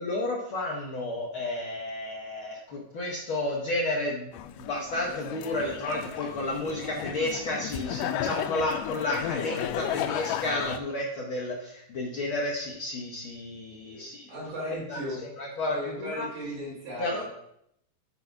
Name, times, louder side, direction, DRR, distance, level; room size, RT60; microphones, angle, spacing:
voice 1, 0.0-4.3 4.5-14.3 14.9-15.0 15.4-16.3 17.0-17.2, left 2 dB, 70° left, -4 dB, 1.2 m, -31 dB
sound 1, 4.3-10.8, left 11 dB, 85° left, 2.2 m, -34 dB
voice 2, 13.9-15.2 15.7-17.2, equal, 85° right, -5 dB, 4.7 m, -36 dB
8.2 x 4.1 x 5.8 m, 0.75 s
omnidirectional pair, 3.8 m